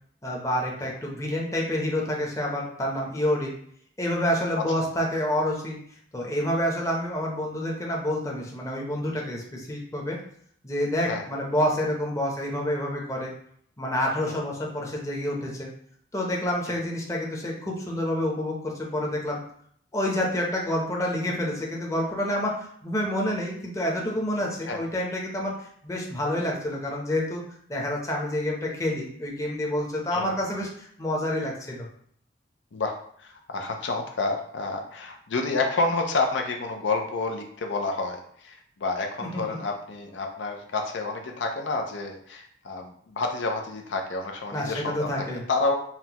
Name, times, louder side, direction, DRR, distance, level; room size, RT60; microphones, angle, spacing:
voice 1, 0.2-3.5 4.0-5.8 6.1-10.2 10.6-13.3 13.8-15.7 16.1-19.4 19.9-27.4 27.7-31.9 39.2-39.6 44.5-45.4, left 1 dB, 15° left, -2 dB, 0.7 m, -28 dB
voice 2, 32.7-45.1 45.5-45.7, left 3 dB, 75° left, 3 dB, 0.5 m, -29 dB
5.7 x 2.2 x 2.9 m, 0.64 s
head